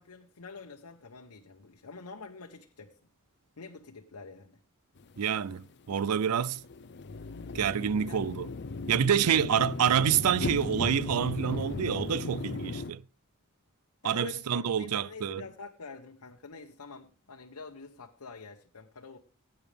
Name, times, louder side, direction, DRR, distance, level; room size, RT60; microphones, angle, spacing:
voice 1, 0.0-3.0 3.6-4.6 8.0-8.3 9.3-9.5 14.0-19.2, left 4 dB, 90° left, 1.0 m, -46 dB
sound 1, 5.0-12.9, left 3 dB, 50° left, 0.6 m, -37 dB
voice 2, 5.2-6.6 7.5-8.5 8.9-13.0 14.0-15.4, right 8 dB, 85° right, 0.5 m, -27 dB
17.5 x 8.8 x 3.4 m
head